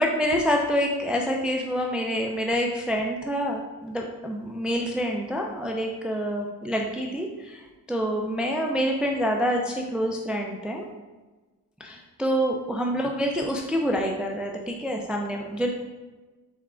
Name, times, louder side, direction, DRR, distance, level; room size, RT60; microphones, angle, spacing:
voice 1, 0.0-10.9 11.8-15.7, equal, ahead, 1 dB, 0.4 m, -27 dB
4.3 x 3.5 x 2.4 m, 1.2 s
cardioid pair, 65°, 39 cm